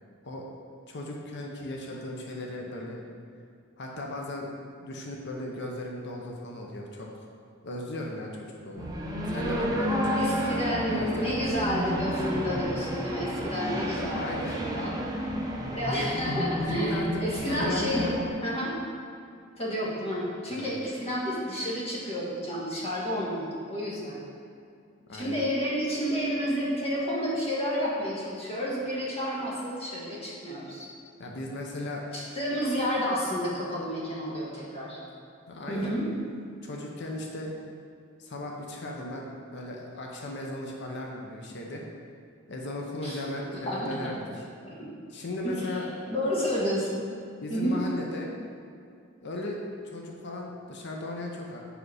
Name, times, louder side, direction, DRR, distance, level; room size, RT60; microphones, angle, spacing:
voice 1, 0.9-3.0 3.8-4.5 4.8-7.3 7.6-8.9 9.3-10.6 10.9-11.4 14.1-14.6 16.7-17.2 17.5-18.1 20.5-20.8 25.1-25.4 31.2-32.0 35.5-36.0 36.6-37.6 38.2-41.8 42.5-44.4 45.1-45.9 47.4-48.3 49.2-51.6, left 1 dB, 60° left, 0 dB, 0.7 m, -36 dB
sound 1, 8.8-18.3, equal, 20° right, 0.7 m, -31 dB
voice 2, 10.1-14.9 15.7-18.1 18.4-18.7 19.6-24.2 25.1-30.9 32.1-35.0 35.7-36.0 43.0-43.2 43.5-43.9 44.6-44.9 45.4-45.7 46.1-47.0 47.5-47.8, equal, 30° left, -6 dB, 1.4 m, -30 dB
5.1 x 5.0 x 4.8 m, 2.4 s
head